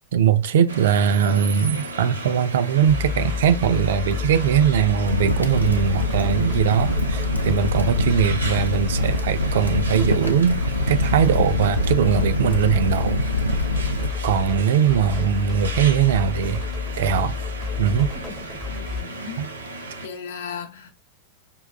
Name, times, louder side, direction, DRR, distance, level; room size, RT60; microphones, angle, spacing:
voice 1, 0.1-10.6 10.9-13.2 14.2-16.6 17.0-17.3 17.8-18.1 19.4-19.5, right 8 dB, 60° right, 0.4 m, -21 dB
sound 1, 0.7-20.1, right 2 dB, 75° right, 0.7 m, -35 dB
sound 2, 2.9-19.0, left 5 dB, 15° left, 0.6 m, -30 dB
Crackle, 5.0-14.1, left 1 dB, 90° left, 0.4 m, -24 dB
voice 2, 18.7-19.4 20.0-20.9, left 6 dB, 60° left, 0.7 m, -35 dB
5.2 x 2.3 x 2.3 m
figure-of-eight pair, 90°, 0 cm